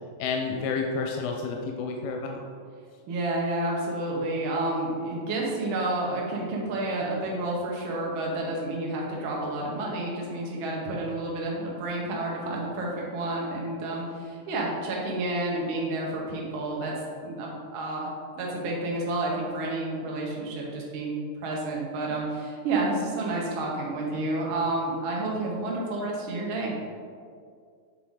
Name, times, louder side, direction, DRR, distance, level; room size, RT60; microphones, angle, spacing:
voice 1, 0.2-2.4, left 4 dB, 85° left, 2 dB, 2.2 m, -30 dB
voice 2, 3.1-16.9 17.2-18.1 18.4-26.7, right 2 dB, 80° right, -3 dB, 1.1 m, -30 dB
7.4 x 3.8 x 3.6 m, 2.2 s
omnidirectional pair, 3.8 m